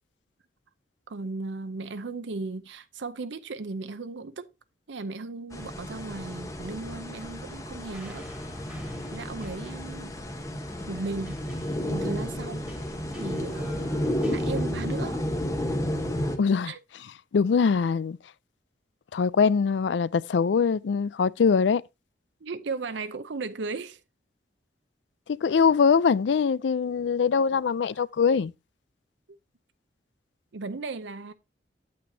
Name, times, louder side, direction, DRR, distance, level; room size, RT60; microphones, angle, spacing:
voice 1, 1.1-4.5 4.9-8.3 9.1-10.1 10.9-11.4 11.9-12.7 13.2-13.9 14.3-15.2 16.6-16.8 22.4-24.0 30.5-31.3, right 3 dB, 90° right, 0.6 m, -36 dB
sound 1, 5.5-16.4, equal, 15° left, 1.0 m, -32 dB
sound 2, 7.6-14.7, left 2 dB, 5° right, 1.7 m, -50 dB
voice 2, 16.4-16.7 17.3-18.2 19.1-21.8 25.4-28.5, left 6 dB, 85° left, 0.4 m, -22 dB
8.6 x 8.1 x 2.7 m
head